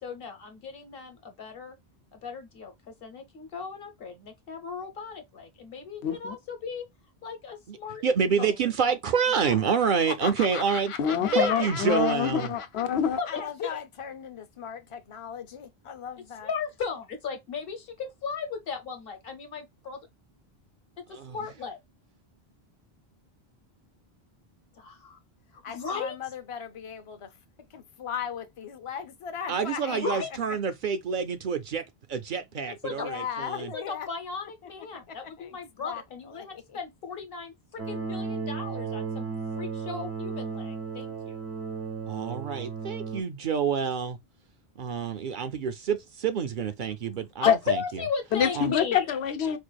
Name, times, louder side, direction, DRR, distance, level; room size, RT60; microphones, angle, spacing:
voice 1, 0.0-1.7 2.1-2.7 3.0-6.8 7.2-8.0 8.4-8.5 8.8-8.9 9.4-9.6 11.3-11.7 13.2-13.8 16.4-20.0 21.3-21.8 24.8-25.2 25.5-26.2 29.9-30.3 32.8-33.1 33.7-41.4 47.4-49.1, left 5 dB, 65° left, 1.1 m, -36 dB
voice 2, 6.0-6.3 11.0-13.2 47.5-47.6 48.3-49.6, left 8 dB, 90° left, 0.9 m, -26 dB
voice 3, 8.0-10.9 11.3-12.5 21.1-21.4 29.5-33.7 42.1-44.2 44.8-48.0 48.5-48.7, right 6 dB, 60° right, 0.6 m, -28 dB
voice 4, 10.1-12.7 13.3-16.5 25.6-27.4 27.7-30.2 30.5-30.6 32.9-34.1 34.4-36.8, left 8 dB, 40° left, 0.6 m, -38 dB
sound 1, 37.8-43.2, right 5 dB, 85° right, 1.1 m, -34 dB
4.6 x 2.4 x 2.2 m
omnidirectional pair, 1.0 m